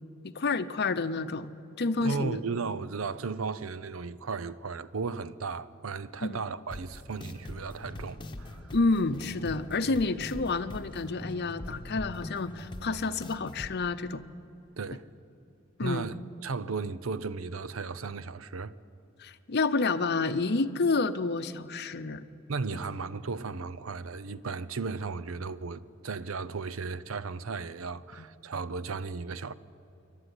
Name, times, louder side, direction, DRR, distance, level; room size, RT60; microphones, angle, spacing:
voice 1, 0.2-1.5 1.8-2.4 6.2-6.4 8.7-14.2 15.8-16.1 19.2-22.2 28.2-28.3, left 3 dB, 55° left, 0.7 m, -29 dB
voice 2, 2.0-8.6 14.8-15.1 15.8-18.7 22.5-29.5, right 4 dB, 80° right, 0.7 m, -35 dB
sound 1, 6.7-13.7, left 1 dB, 25° left, 1.1 m, -43 dB
27.5 x 11.5 x 9.9 m
head